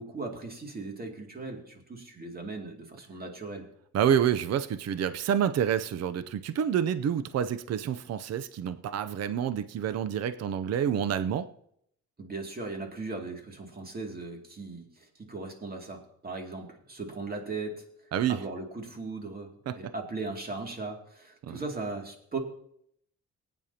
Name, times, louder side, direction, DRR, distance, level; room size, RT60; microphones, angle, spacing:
voice 1, 0.0-3.6 12.2-17.8 18.3-22.4, right 3 dB, 30° right, 2 dB, 2.5 m, -38 dB
voice 2, 3.9-11.5 18.1-18.4 19.7-19.9 21.4-21.6, right 9 dB, 55° right, 12 dB, 0.6 m, -28 dB
19.5 x 9.2 x 2.9 m, 0.69 s
cardioid pair, 90°, 30 cm